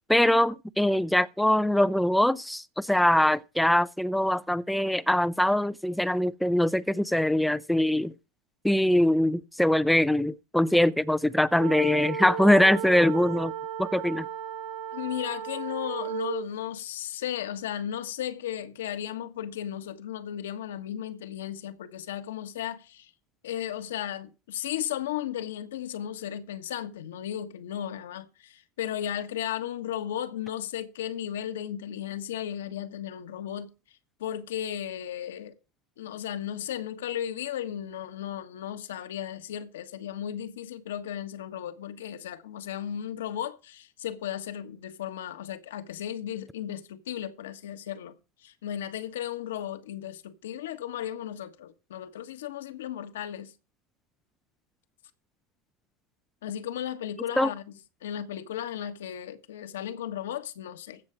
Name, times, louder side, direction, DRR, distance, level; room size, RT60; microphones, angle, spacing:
voice 1, 0.1-8.1 8.6-13.5 13.8-14.3 57.4-57.5, left 1 dB, 5° left, 0.5 m, -23 dB
sound 1, 11.6-16.5, right 9 dB, 80° right, 5.5 m, -35 dB
voice 2, 14.9-23.1 23.4-33.7 34.2-35.5 36.0-48.1 48.4-53.5 56.4-61.0, left 10 dB, 85° left, 1.4 m, -35 dB
15.0 x 6.4 x 5.0 m
hypercardioid pair, 95°, 0 cm